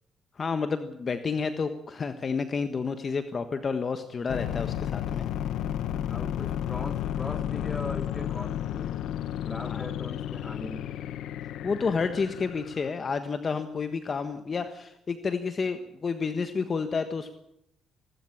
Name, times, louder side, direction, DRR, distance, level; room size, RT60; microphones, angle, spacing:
voice 1, 0.4-5.3 9.6-9.9 11.6-17.3, left 5 dB, 40° left, 9 dB, 1.4 m, -30 dB
sound 1, 4.3-12.9, left 11 dB, 80° left, 1.2 m, -32 dB
voice 2, 6.0-9.0 9.4-10.9, left 2 dB, 15° left, 7 dB, 2.8 m, -40 dB
26.5 x 12.5 x 8.7 m, 0.78 s
cardioid pair, 90°, 0 cm